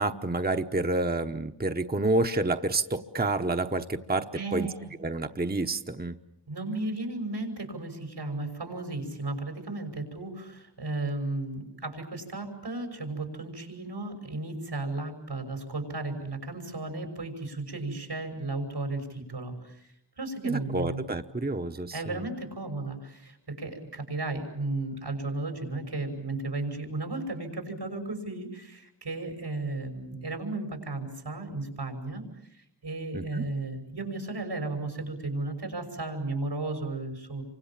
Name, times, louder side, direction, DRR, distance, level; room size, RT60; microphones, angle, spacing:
voice 1, 0.0-4.7 5.0-6.2 20.4-22.2 33.1-33.4, right 2 dB, 25° right, 6 dB, 1.1 m, -29 dB
voice 2, 4.3-4.9 6.5-21.0 21.9-37.4, right 2 dB, 85° right, 5 dB, 6.2 m, -34 dB
29.0 x 25.0 x 7.4 m, 0.74 s
wide cardioid pair, 55°, 39 cm